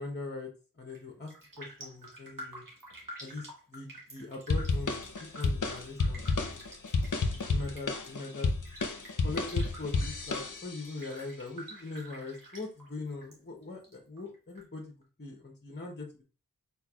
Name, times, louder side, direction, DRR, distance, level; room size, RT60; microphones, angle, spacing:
voice 1, 0.0-2.6 3.2-6.5 7.3-8.5 9.2-16.2, left 3 dB, 30° left, 2 dB, 0.9 m, -41 dB
Raindrop, 0.8-1.0 1.3-13.4 13.6-14.6 15.0-15.1, right 1 dB, 70° right, 1.6 m, -49 dB
sound 1, 4.5-10.9, left 3 dB, 65° left, 0.7 m, -31 dB
4.5 x 4.2 x 2.3 m, 0.35 s
wide cardioid pair, 45°, 34 cm